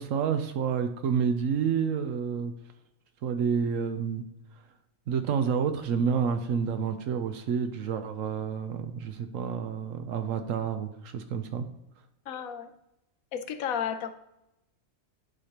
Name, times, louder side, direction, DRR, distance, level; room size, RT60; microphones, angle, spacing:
voice 1, 0.0-2.5 3.2-4.2 5.1-11.7, right 7 dB, 75° right, 8 dB, 1.0 m, -29 dB
voice 2, 12.3-12.7 13.3-14.1, left 8 dB, 85° left, 8 dB, 1.1 m, -32 dB
10.0 x 5.0 x 2.9 m, 0.88 s
omnidirectional pair, 1.4 m